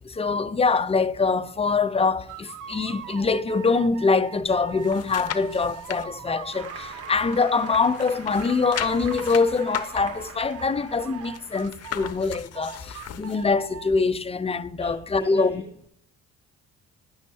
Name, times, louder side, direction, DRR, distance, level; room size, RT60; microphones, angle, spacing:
voice 1, 0.1-15.5, left 4 dB, 20° left, 0.5 m, -24 dB
sound 1, 2.3-8.0 8.3-10.7 11.0-13.9, right 9 dB, 80° right, 0.7 m, -41 dB
sound 2, 4.4-6.0 6.5-7.6 7.9-13.5 13.9-14.0, left 10 dB, 55° left, 0.7 m, -37 dB
Applause, 6.5-12.2, right 3 dB, 50° right, 1.8 m, -44 dB
voice 2, 14.8-15.6, equal, 15° right, 1.4 m, -42 dB
9.3 x 6.3 x 2.6 m
cardioid pair, 90°, 30 cm